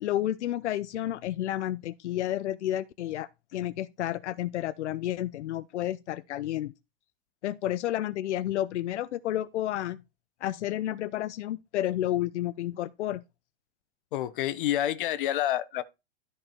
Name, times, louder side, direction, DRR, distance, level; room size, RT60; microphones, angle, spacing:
voice 1, 0.0-6.7 7.4-10.0 10.4-13.2, left 13 dB, 80° left, 0.7 m, -31 dB
voice 2, 14.1-15.8, left 12 dB, 50° left, 0.9 m, -28 dB
13.0 x 4.8 x 4.5 m
supercardioid pair, 175°, 35 cm